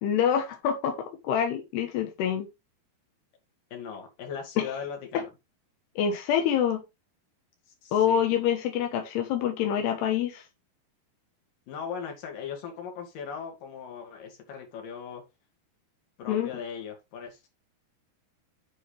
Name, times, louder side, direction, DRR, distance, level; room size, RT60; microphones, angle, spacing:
voice 1, 0.0-0.9 1.2-2.5 4.6-4.7 6.0-6.8 7.9-10.4 16.3-16.5, left 9 dB, 85° left, 3.2 m, -26 dB
voice 2, 3.7-5.3 7.8-8.2 11.7-15.2 16.2-17.5, left 7 dB, 60° left, 3.8 m, -38 dB
9.2 x 5.9 x 3.4 m
omnidirectional pair, 4.6 m